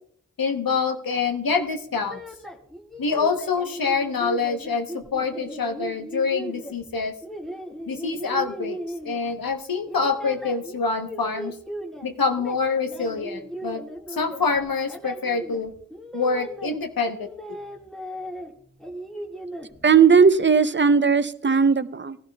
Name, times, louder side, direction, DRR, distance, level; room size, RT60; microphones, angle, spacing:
voice 1, 0.4-2.2 3.0-7.1 7.9-8.8 9.0-11.5 12.0-13.8 14.1-15.7 16.1-17.3, left 4 dB, 85° left, 6 dB, 1.0 m, -26 dB
sound 1, 1.9-9.5 9.8-12.1 12.3-16.8 17.1-18.5 18.8-20.3, equal, ahead, 1.8 m, -37 dB
voice 2, 19.8-22.2, right 5 dB, 35° right, 13 dB, 0.6 m, -17 dB
18.0 x 11.5 x 2.3 m, 0.65 s
wide cardioid pair, 45°, 34 cm